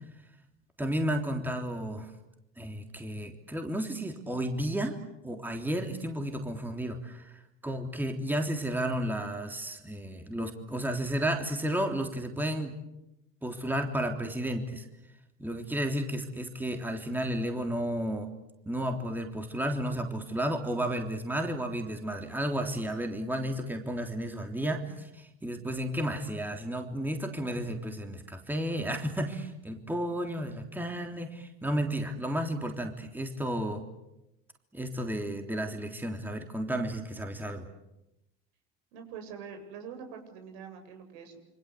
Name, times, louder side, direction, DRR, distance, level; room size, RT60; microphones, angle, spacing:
voice 1, 0.8-2.1 2.6-12.7 13.4-14.9 15.4-18.3 18.6-33.8 34.7-37.7, right 1 dB, 5° right, 4 dB, 3.4 m, -32 dB
voice 2, 38.9-41.4, right 6 dB, 70° right, 5 dB, 7.8 m, -44 dB
27.5 x 25.0 x 8.5 m, 0.90 s
supercardioid pair, 95°, 33 cm